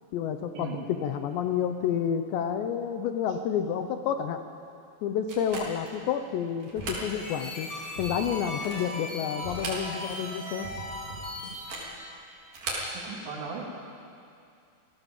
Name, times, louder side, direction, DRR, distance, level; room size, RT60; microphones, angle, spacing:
voice 1, 0.1-4.4 5.0-7.7 8.0-10.7, left 8 dB, 75° left, 8 dB, 2.9 m, -29 dB
sound 1, 5.3-6.0 6.6-7.1 7.5-7.6 8.3-8.9 9.4-10.2 10.5-10.6 11.5-12.0 12.5-12.9, right 2 dB, 45° right, 5.1 m, -37 dB
sound 2, 6.8-9.1 9.4-11.8, right 1 dB, 15° left, 3.3 m, -44 dB
sound 3, 6.9-12.0, left 1 dB, 45° left, 6.1 m, -38 dB
voice 2, 13.0-13.7, right 4 dB, 65° right, -2 dB, 5.1 m, -37 dB
28.0 x 17.5 x 7.3 m, 2.5 s
omnidirectional pair, 5.5 m